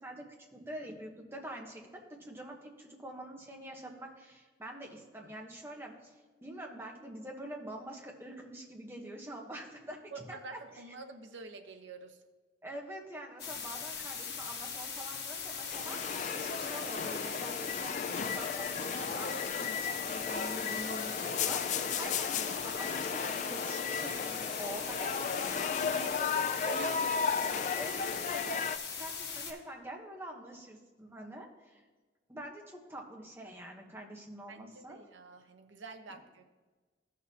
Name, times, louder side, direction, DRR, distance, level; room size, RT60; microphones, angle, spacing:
voice 1, 0.0-10.8 12.6-27.5 27.7-31.8 32.3-35.0, right 1 dB, 15° right, 0 dB, 1.0 m, -46 dB
voice 2, 10.1-12.2 22.0-22.2 25.3-27.6 34.5-36.4, right 4 dB, 85° right, 6 dB, 0.8 m, -47 dB
sound 1, 13.4-29.5, left 6 dB, 60° left, 1.4 m, -40 dB
sound 2, 15.5-28.8, left 6 dB, 40° left, 0.3 m, -35 dB
14.5 x 6.3 x 2.8 m, 1.3 s
head